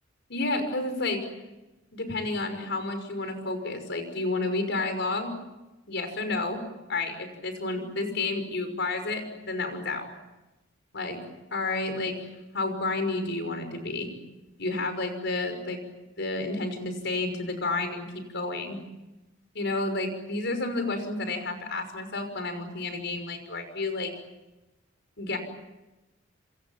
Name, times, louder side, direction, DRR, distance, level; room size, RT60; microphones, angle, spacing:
voice 1, 0.3-1.2 1.9-5.3 5.9-6.6 6.9-10.1 10.9-11.2 11.5-12.2 12.5-14.1 14.6-15.8 16.2-18.8 19.5-24.1 25.2-25.4, left 2 dB, 60° left, 8 dB, 5.9 m, -30 dB
27.5 x 27.0 x 7.4 m, 1.0 s
head